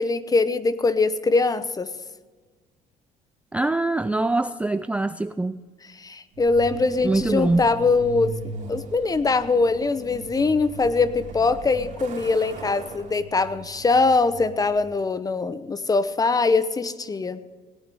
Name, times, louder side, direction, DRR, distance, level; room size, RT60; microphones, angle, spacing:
voice 1, 0.0-1.9 6.0-8.3 8.7-17.4, left 3 dB, 20° left, 14 dB, 0.8 m, -22 dB
voice 2, 3.5-5.6 7.0-7.6, right 2 dB, 5° right, 12 dB, 0.3 m, -23 dB
Truck, 6.3-15.1, right 3 dB, 50° right, 3.2 m, -39 dB
17.5 x 9.6 x 5.4 m, 1.4 s
cardioid pair, 110°, 17 cm